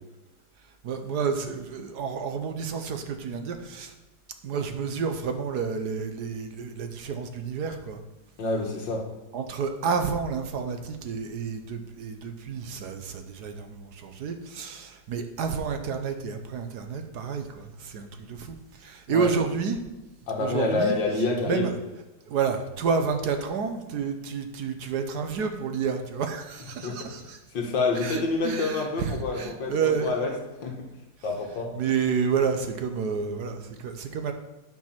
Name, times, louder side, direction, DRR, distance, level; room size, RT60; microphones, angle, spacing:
voice 1, 0.8-3.9 4.4-8.0 9.3-19.8 20.4-21.0 21.4-21.7 22.3-27.4 27.9-30.1 31.7-34.3, right 6 dB, 65° right, 6 dB, 1.3 m, -30 dB
voice 2, 8.4-9.1 19.1-19.3 20.3-21.7 26.8-27.1 27.5-30.3 30.6-30.8 31.2-31.8, left 3 dB, 75° left, 1 dB, 2.1 m, -27 dB
9.3 x 5.2 x 5.8 m, 1.1 s
omnidirectional pair, 2.0 m